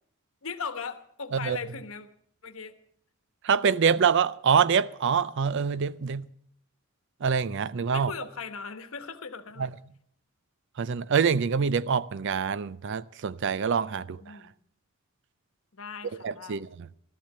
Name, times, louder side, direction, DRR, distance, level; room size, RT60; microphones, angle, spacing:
voice 1, 0.4-2.1 2.4-2.7 7.9-9.7 14.0-14.5 15.7-16.6, left 5 dB, 70° left, 1.1 m, -38 dB
voice 2, 3.4-6.3 7.2-8.1 9.6-9.7 10.8-14.2 16.2-16.9, right 6 dB, 60° right, 0.5 m, -25 dB
13.5 x 12.0 x 6.8 m
head